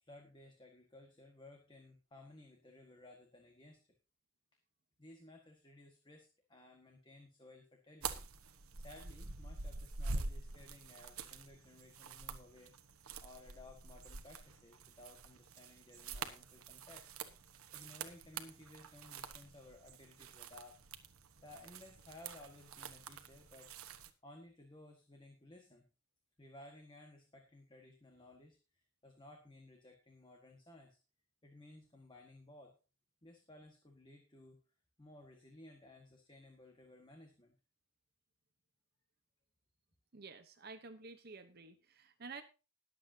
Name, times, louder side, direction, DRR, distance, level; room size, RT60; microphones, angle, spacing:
voice 1, 0.0-3.8 5.0-8.3 8.8-12.8 13.2-17.1 17.7-20.8 21.4-23.7 24.2-25.8 26.4-31.0 31.4-32.8 33.2-34.6 35.0-37.5, left 1 dB, 20° left, 3 dB, 1.6 m, -58 dB
sound 1, 8.0-24.1, right 4 dB, 80° right, 1.2 m, -47 dB
voice 2, 40.1-42.4, right 4 dB, 45° right, 8 dB, 0.9 m, -51 dB
20.5 x 8.0 x 2.8 m, 0.31 s
head